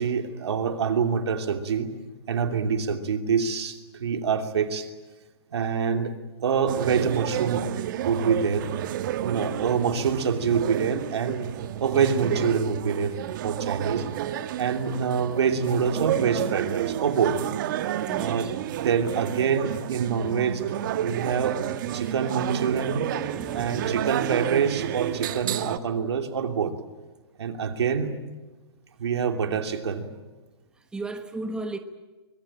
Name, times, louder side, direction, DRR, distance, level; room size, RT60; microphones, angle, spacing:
voice 1, 0.0-1.9 2.3-4.9 5.5-7.7 8.0-8.7 9.2-11.4 11.8-13.1 13.4-14.1 14.6-17.4 18.2-18.5 18.8-20.6 21.0-21.6 21.9-23.1 23.5-26.7 27.4-28.1 29.0-30.1, right 6 dB, 75° right, 3.0 m, -26 dB
sound 1, 6.7-25.8, right 11 dB, 50° right, 1.3 m, -30 dB
voice 2, 18.1-18.5 21.9-22.1 23.1-23.9 30.9-31.8, right 2 dB, 5° right, 1.3 m, -36 dB
24.5 x 22.0 x 8.9 m
hypercardioid pair, 145°, 14 cm